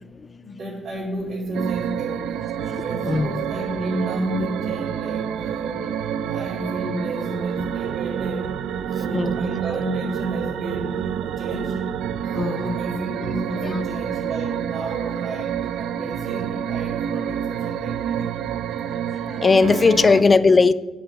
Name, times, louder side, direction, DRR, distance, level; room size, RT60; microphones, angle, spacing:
voice 1, 0.4-2.4 2.8-5.8 6.3-8.5 9.0-11.7 12.4-18.3 19.8-20.0, right 1 dB, 65° right, -7 dB, 2.5 m, -31 dB
sound 1, 1.5-20.2, right 9 dB, 85° right, 0.3 m, -28 dB
voice 2, 3.0-3.5 9.1-9.4 12.3-12.8 13.6-13.8 19.4-20.7, left 4 dB, 30° left, 14 dB, 0.3 m, -18 dB
8.8 x 3.9 x 6.9 m, 1.2 s
cardioid pair, 90°, 0 cm